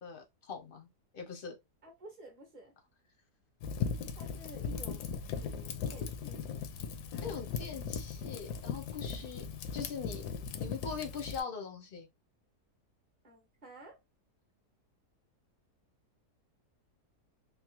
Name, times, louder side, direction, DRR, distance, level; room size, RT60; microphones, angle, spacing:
voice 1, 0.0-0.9 1.1-1.6 7.2-9.5 9.7-10.2 10.5-12.1, left 5 dB, 55° left, 0.6 m, -42 dB
voice 2, 1.8-2.7 4.2-6.4 13.2-14.0, right 1 dB, 35° right, 0.8 m, -52 dB
Fire, 3.6-11.4, left 6 dB, 85° left, 1.1 m, -38 dB
3.5 x 2.0 x 2.9 m
omnidirectional pair, 1.7 m